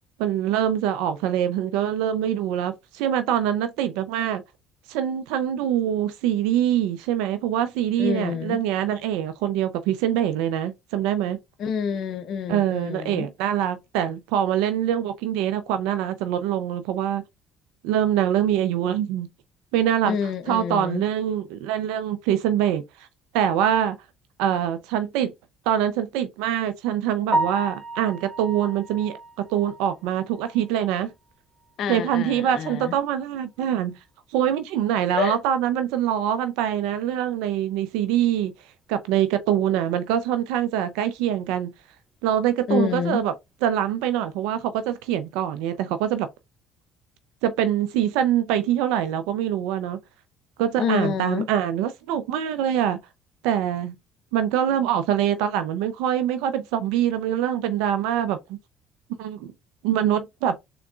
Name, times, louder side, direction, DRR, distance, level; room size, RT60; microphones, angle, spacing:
voice 1, 0.2-4.4 4.9-11.4 12.5-17.2 17.8-19.3 19.7-20.2 20.5-22.8 23.3-24.0 24.4-25.3 25.7-31.1 31.9-34.0 34.3-38.5 38.9-41.7 42.2-43.3 43.6-46.3 47.4-50.0 50.6-53.0 53.4-54.0 54.3-58.6 59.2-59.5 59.8-60.6, right 10 dB, 85° right, 0.4 m, -24 dB
voice 2, 8.0-8.6 11.6-13.3 20.0-21.0 31.8-33.0 35.1-35.4 42.7-43.2 50.8-51.5, left 7 dB, 60° left, 0.6 m, -27 dB
Piano, 27.3-31.3 31.6-31.8 32.2-32.3 32.7-32.8 35.9-36.0 44.5-44.7, right 2 dB, 15° right, 1.0 m, -32 dB
3.8 x 3.5 x 2.3 m
supercardioid pair, 75°, 0 cm